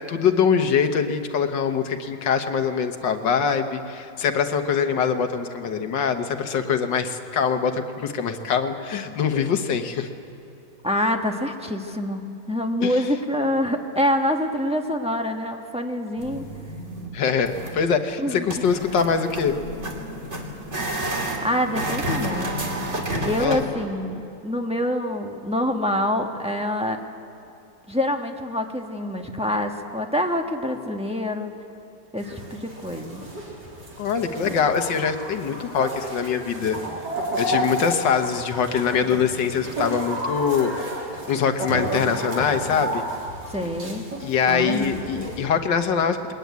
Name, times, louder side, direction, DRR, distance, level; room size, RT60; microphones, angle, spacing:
voice 1, 0.1-10.1 12.8-13.0 17.1-19.5 23.4-23.6 34.0-36.8 37.4-40.7 41.3-43.0 44.2-46.3, left 6 dB, 85° left, 7 dB, 1.9 m, -23 dB
voice 2, 10.8-12.2 12.5-16.4 18.2-18.5 21.1-22.7 23.2-27.0 27.9-31.5 32.1-33.2 43.5-44.1 44.5-45.0, left 1 dB, 5° right, 2 dB, 1.2 m, -26 dB
sound 1, 16.2-17.1 17.4-17.8 18.5-23.6, right 1 dB, 40° right, 2.9 m, -30 dB
sound 2, 32.2-45.5, right 1 dB, 70° right, 4.5 m, -32 dB
22.0 x 19.0 x 9.4 m, 2.6 s
omnidirectional pair, 1.9 m